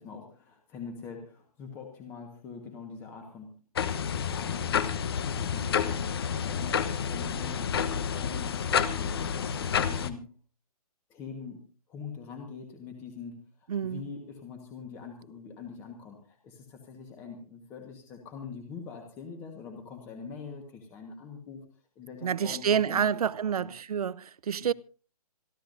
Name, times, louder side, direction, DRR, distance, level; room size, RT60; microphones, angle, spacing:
voice 1, 0.0-3.5 4.3-5.0 5.3-10.3 11.1-21.7 21.9-23.7 24.6-24.7, left 5 dB, 10° left, 1.4 m, -44 dB
sound 1, 3.8-10.1, left 7 dB, 40° left, 1.1 m, -29 dB
voice 2, 13.7-14.0 22.2-24.7, right 8 dB, 70° right, 0.7 m, -28 dB
27.0 x 12.5 x 2.6 m
hypercardioid pair, 170°, 20 cm